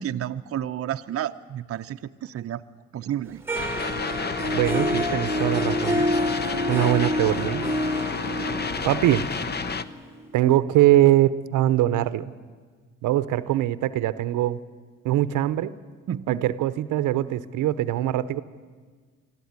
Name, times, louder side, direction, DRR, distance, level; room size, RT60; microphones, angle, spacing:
voice 1, 0.0-2.6 2.9-3.4 16.1-16.4, right 10 dB, 50° right, 8 dB, 0.7 m, -31 dB
sound 1, 3.5-9.8, left 5 dB, 35° left, 0.9 m, -31 dB
Harp, 3.5-10.4, equal, 10° right, 1.3 m, -28 dB
voice 2, 4.5-6.1 6.7-7.6 8.8-9.3 10.3-12.3 13.0-14.6 15.0-15.7 16.3-18.4, right 14 dB, 85° right, 15 dB, 0.8 m, -22 dB
22.5 x 14.0 x 9.5 m, 1.5 s
cardioid pair, 90°, 30 cm